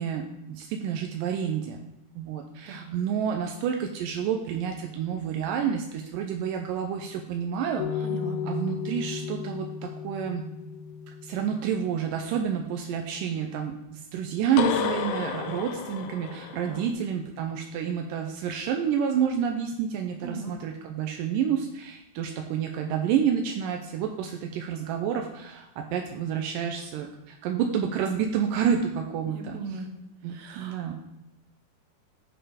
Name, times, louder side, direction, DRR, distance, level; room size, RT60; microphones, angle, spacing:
voice 1, 0.0-1.8 2.2-8.1 8.4-10.5 11.2-29.8 30.2-30.9, right 8 dB, 85° right, 3 dB, 2.2 m, -29 dB
sound 1, 7.8-12.1 14.6-16.9, left 7 dB, 90° left, 2.5 m, -33 dB
voice 2, 8.0-8.4 16.7-16.8 20.2-20.5 29.3-29.9 30.3-30.9, right 3 dB, 65° right, 4 dB, 2.0 m, -38 dB
7.9 x 6.7 x 5.0 m, 0.93 s
omnidirectional pair, 4.0 m